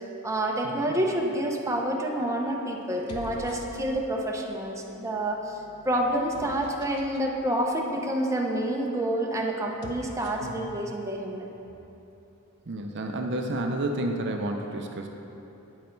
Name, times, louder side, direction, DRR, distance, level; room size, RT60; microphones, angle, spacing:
voice 1, 0.2-5.6 5.8-11.5, right 1 dB, 15° right, -1 dB, 0.6 m, -28 dB
sound 1, 1.6-2.0 2.9-4.2 5.0-7.3 9.6-10.6, left 1 dB, 85° left, 0.7 m, -46 dB
voice 2, 12.7-15.1, right 1 dB, 50° right, 3 dB, 0.6 m, -31 dB
9.0 x 5.3 x 4.5 m, 2.9 s
head